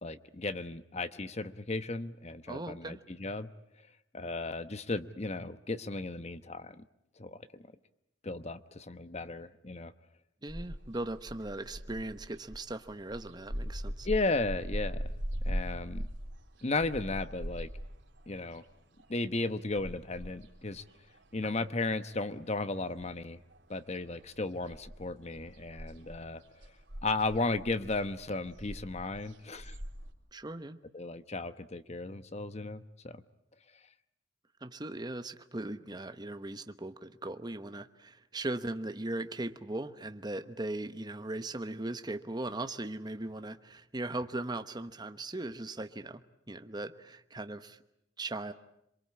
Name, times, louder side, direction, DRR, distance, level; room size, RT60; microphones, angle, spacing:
voice 1, 0.0-3.5 4.1-6.8 7.2-7.7 8.2-9.9 14.0-15.1 15.5-16.1 16.6-17.7 18.3-18.6 19.1-20.8 21.3-23.4 23.7-26.4 27.0-29.8 30.9-33.2, left 3 dB, 35° left, 12 dB, 1.0 m, -35 dB
voice 2, 2.5-3.0 10.4-14.1 30.3-30.8 34.6-46.2 46.5-47.8 48.2-48.5, right 2 dB, 20° right, 9 dB, 1.0 m, -38 dB
Air tone Summer Car Passing, 10.5-22.1 22.4-23.7 23.9-30.1, equal, 75° right, 3.7 m, -41 dB
27.0 x 23.5 x 8.6 m, 0.78 s
head